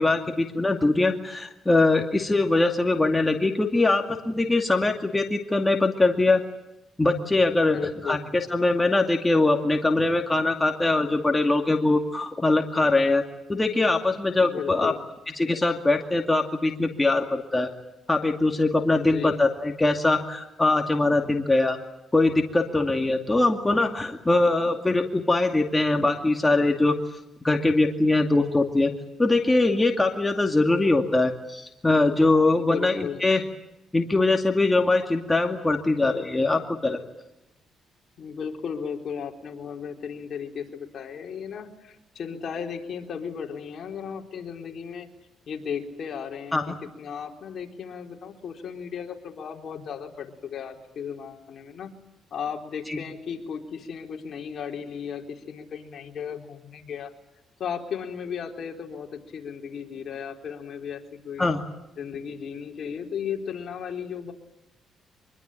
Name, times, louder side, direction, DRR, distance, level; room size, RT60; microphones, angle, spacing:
voice 1, 0.0-6.4 7.0-7.8 8.0-13.2 13.5-14.9 15.4-17.7 18.1-21.8 22.1-27.0 27.4-28.9 29.2-33.4 33.9-37.0 46.5-46.6 52.9-53.0 61.4-61.6, left 2 dB, 15° left, 3 dB, 2.4 m, -22 dB
voice 2, 7.6-8.2 14.3-15.0 18.9-19.4 32.5-33.2 38.2-45.1 45.5-51.9 52.3-57.1 57.6-61.5 62.0-64.3, left 7 dB, 60° left, 2 dB, 4.1 m, -35 dB
24.5 x 22.5 x 9.2 m, 0.93 s
cardioid pair, 90°, 0 cm